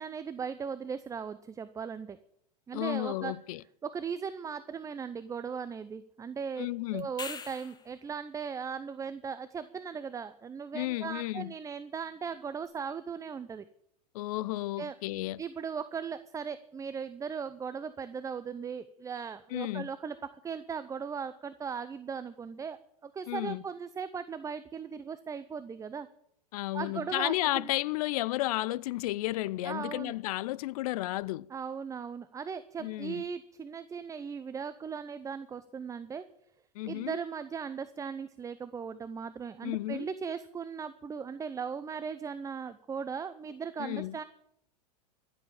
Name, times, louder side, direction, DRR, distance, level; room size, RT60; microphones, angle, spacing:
voice 1, 0.0-2.2 2.7-3.3 3.8-6.7 6.9-13.7 14.8-14.9 15.4-26.1 26.7-27.7 29.6-30.1 31.5-36.2 36.9-44.2, right 6 dB, 15° right, 0.6 m, -38 dB
voice 2, 2.7-3.6 6.6-7.1 10.7-11.5 14.1-15.4 19.5-19.9 23.3-23.6 26.5-31.5 32.8-33.2 36.7-37.2 39.6-40.1 43.8-44.1, left 17 dB, 60° left, 0.6 m, -33 dB
sound 1, 7.0-8.0 12.6-12.7, left 6 dB, 20° left, 1.1 m, -41 dB
14.0 x 7.8 x 8.7 m
hypercardioid pair, 100°, 21 cm